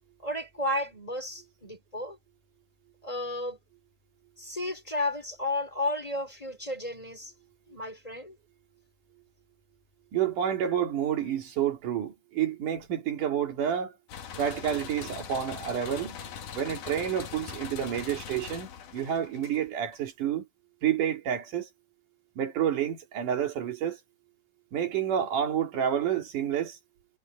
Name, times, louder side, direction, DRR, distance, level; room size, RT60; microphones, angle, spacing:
voice 1, 0.2-2.2 3.0-3.6 4.4-7.3 7.7-8.4, left 1 dB, 10° left, 4.0 m, -33 dB
voice 2, 10.1-13.9 14.4-16.2 16.5-20.5 20.8-21.7 22.4-24.0 24.7-26.8, right 9 dB, 70° right, 4.1 m, -29 dB
sound 1, 14.1-20.0, left 7 dB, 70° left, 3.4 m, -41 dB
omnidirectional pair, 3.9 m